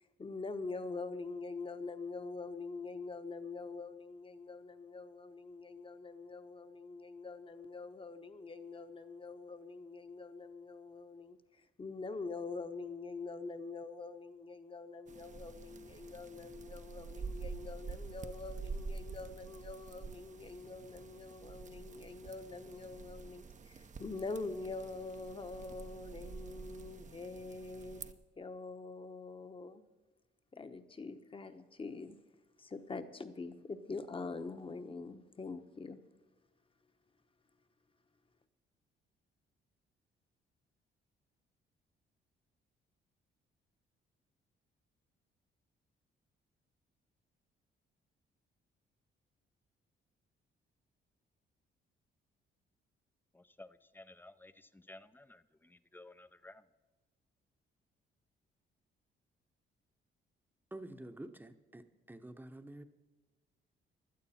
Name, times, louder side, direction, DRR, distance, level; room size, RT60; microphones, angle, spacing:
voice 1, 0.2-29.8 30.5-32.2 32.6-36.0, left 3 dB, 25° left, 1.1 m, -44 dB
sound 1, 15.1-28.1, right 4 dB, 40° right, 0.8 m, -48 dB
voice 2, 53.3-56.6, left 2 dB, 10° left, 0.6 m, -55 dB
voice 3, 60.7-62.8, right 1 dB, 10° right, 0.9 m, -49 dB
16.0 x 12.0 x 4.3 m
cardioid pair, 90°, 20 cm